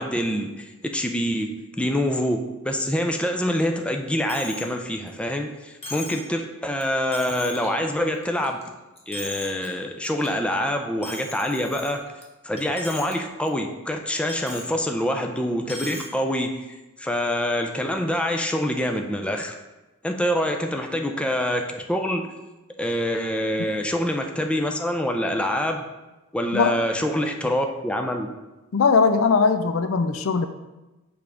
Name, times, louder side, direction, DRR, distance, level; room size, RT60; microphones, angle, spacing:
voice 1, 0.0-1.5 1.8-8.6 9.1-12.1 12.4-16.6 17.0-19.5 20.0-22.3 22.8-25.8 26.3-28.3, equal, 5° left, 3 dB, 0.4 m, -25 dB
Coin (dropping), 4.3-4.7 5.1-5.2 5.8-6.3 6.8-6.9 7.1-7.7 8.1-8.7 9.0-9.7 10.0-10.3 11.0-12.2 12.6-13.1 13.5-13.6 14.3-14.7 15.6-16.1, left 2 dB, 30° left, 1.1 m, -37 dB
voice 2, 28.7-30.5, left 5 dB, 70° left, 9 dB, 0.5 m, -20 dB
6.9 x 3.5 x 5.0 m, 1.1 s
head